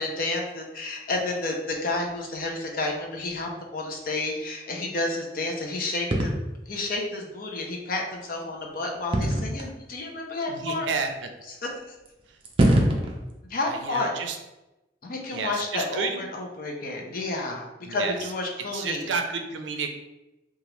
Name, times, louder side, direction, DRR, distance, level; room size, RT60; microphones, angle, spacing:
voice 1, 0.0-6.3 6.7-10.9 11.6-11.9 13.5-14.1 15.0-19.1, left 2 dB, 50° left, 1 dB, 0.5 m, -30 dB
sound 1, 6.1-6.4 9.1-9.7 10.6-10.7 12.1-12.2 12.4-13.2, right 1 dB, 30° right, 0.4 m, -21 dB
voice 2, 10.5-11.3 13.6-14.4 15.3-16.2 17.8-18.3 18.7-19.9, right 5 dB, 85° right, 5 dB, 0.4 m, -31 dB
2.9 x 2.3 x 3.1 m, 1.0 s
head